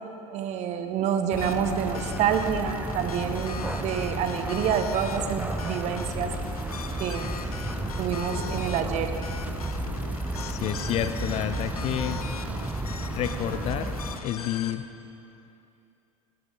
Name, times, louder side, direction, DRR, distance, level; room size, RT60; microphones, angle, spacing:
voice 1, 0.3-6.3 7.0-7.3 8.0-9.1, right 8 dB, 40° right, 7 dB, 1.1 m, -28 dB
sound 1, 1.3-14.2, right 2 dB, 10° right, 0.8 m, -33 dB
sound 2, 1.4-14.7, left 7 dB, 75° left, 0.6 m, -40 dB
sound 3, 2.4-8.5 9.0-13.8, equal, 90° right, 3.2 m, -50 dB
voice 2, 10.3-12.2 13.1-13.9 14.2-14.8, left 11 dB, 35° left, 11 dB, 0.6 m, -30 dB
18.0 x 13.0 x 3.9 m, 2.8 s
figure-of-eight pair, 75°, 19 cm